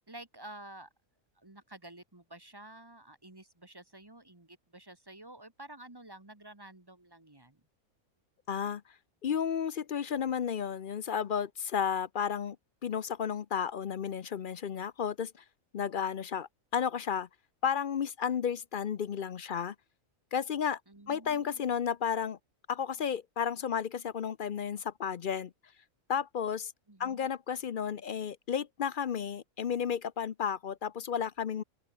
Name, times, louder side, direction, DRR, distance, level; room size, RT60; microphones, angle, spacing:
voice 1, 0.1-0.9 1.4-7.6 20.9-21.7 26.9-27.3, right 1 dB, 15° right, 1.7 m, -51 dB
voice 2, 8.5-8.8 9.2-12.6 12.8-15.3 15.7-17.3 17.6-19.7 20.3-20.8 21.1-22.4 22.7-25.5 26.1-26.7 27.0-31.6, left 7 dB, 50° left, 0.6 m, -32 dB
open air
omnidirectional pair, 1.4 m